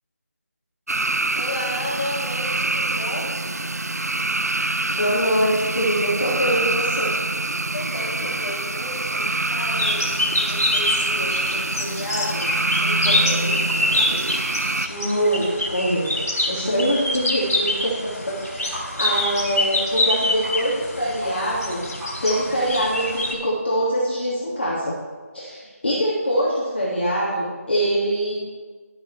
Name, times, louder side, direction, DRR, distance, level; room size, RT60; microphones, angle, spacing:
sound 1, 0.9-14.9, right 2 dB, 80° right, 0.6 m, -25 dB
voice 1, 1.3-3.3 7.7-12.5 12.8-13.6, left 1 dB, 20° left, -11 dB, 3.2 m, -32 dB
voice 2, 4.9-7.1 14.9-16.2 16.5-21.8 22.2-24.9 25.3-28.3, equal, 45° left, -7 dB, 2.5 m, -23 dB
sound 2, 9.8-23.3, left 1 dB, 75° left, 3.5 m, -26 dB
sound 3, 18.7-18.8 19.1-19.2 19.5-19.6 20.0-20.1 20.4-20.5 20.8-20.9 21.2-21.3 21.6-22.7, equal, 5° right, 0.7 m, -37 dB
11.5 x 8.9 x 3.4 m, 1.5 s
figure-of-eight pair, 170°, 8 cm